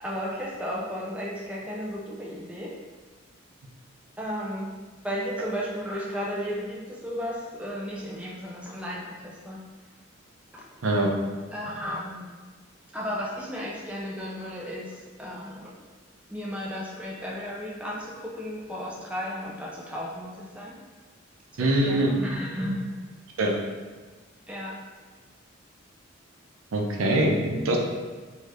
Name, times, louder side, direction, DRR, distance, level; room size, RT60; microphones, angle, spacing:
voice 1, 0.0-2.7 4.2-4.7 5.0-9.6 10.5-10.6 11.5-12.3 12.9-15.7 16.3-20.7 21.6-22.8 24.5-24.7 27.7-27.8, equal, 5° right, -4 dB, 0.3 m, -34 dB
voice 2, 21.6-22.1 23.4-23.5 26.7-27.8, right 1 dB, 75° right, 0 dB, 0.5 m, -23 dB
2.7 x 2.3 x 3.2 m, 1.4 s
head